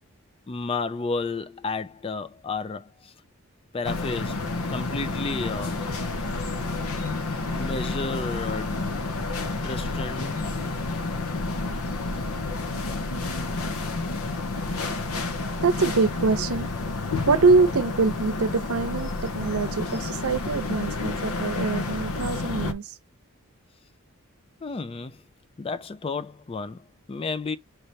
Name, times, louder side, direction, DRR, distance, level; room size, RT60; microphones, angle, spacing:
voice 1, 0.5-3.1 3.7-4.4 4.7-5.8 7.5-9.1 9.6-10.4 24.6-25.2 25.6-27.6, left 4 dB, 25° left, 0.3 m, -32 dB
sound 1, 3.8-22.7, left 3 dB, 80° left, 0.7 m, -30 dB
voice 2, 15.6-16.7 17.3-22.8, right 4 dB, 80° right, 0.7 m, -24 dB
4.5 x 3.3 x 2.7 m
head